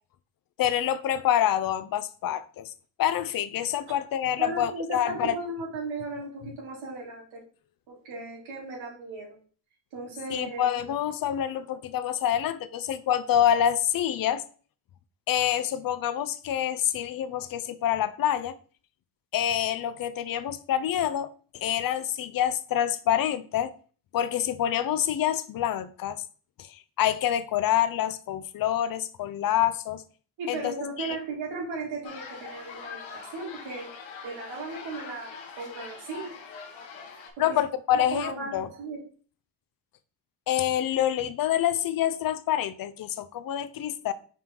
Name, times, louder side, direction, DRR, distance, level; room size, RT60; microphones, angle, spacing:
voice 1, 0.6-2.7 3.0-5.4 10.3-14.4 15.3-18.6 19.3-21.3 21.5-23.7 24.1-26.2 26.7-30.0 30.5-30.7 31.0-31.2 37.4-38.7 40.5-44.1, left 11 dB, 50° left, 0.6 m, -27 dB
voice 2, 4.4-7.4 7.9-9.4 9.9-10.6 30.4-33.9 34.2-35.3 35.6-36.3 37.5-37.6 37.9-39.0, right 3 dB, 90° right, 2.9 m, -36 dB
sound 1, 32.0-37.3, left 5 dB, 80° left, 1.3 m, -43 dB
5.5 x 4.5 x 3.8 m
cardioid pair, 140°, 45 cm